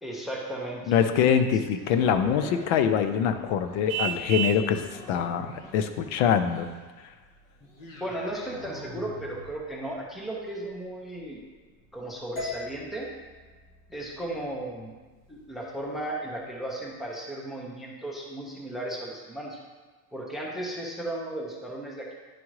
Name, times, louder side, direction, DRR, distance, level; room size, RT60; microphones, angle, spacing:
voice 1, 0.0-0.9 7.6-11.4 11.9-13.1 13.9-14.9 15.3-19.6 20.1-22.1, right 1 dB, ahead, -2 dB, 0.4 m, -35 dB
voice 2, 0.9-4.8 5.1-5.5 5.7-6.7, left 8 dB, 85° left, 9 dB, 0.7 m, -24 dB
sound 1, 1.7-15.9 16.5-16.6, left 2 dB, 50° left, 1.1 m, -47 dB
Vehicle horn car horn honking, 3.9-4.7, right 9 dB, 75° right, 0.7 m, -30 dB
sound 2, 12.4-16.5, left 3 dB, 30° left, 1.8 m, -43 dB
10.0 x 3.6 x 3.1 m, 1.3 s
cardioid pair, 175°, 39 cm